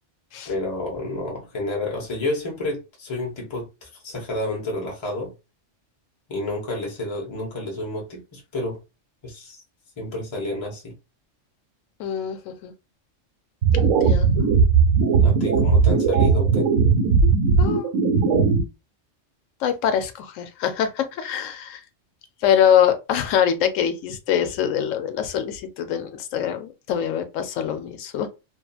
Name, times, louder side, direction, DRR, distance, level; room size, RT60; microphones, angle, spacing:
voice 1, 0.4-5.3 6.3-8.8 9.2-9.6 10.0-10.9 15.2-16.7, left 2 dB, 25° left, 0.8 m, -30 dB
voice 2, 12.0-12.7 13.7-14.4 17.6-17.9 19.6-21.8 22.4-28.3, left 9 dB, 80° left, 0.9 m, -24 dB
sound 1, 13.6-18.6, right 5 dB, 85° right, 1.1 m, -18 dB
2.7 x 2.4 x 2.3 m
omnidirectional pair, 1.3 m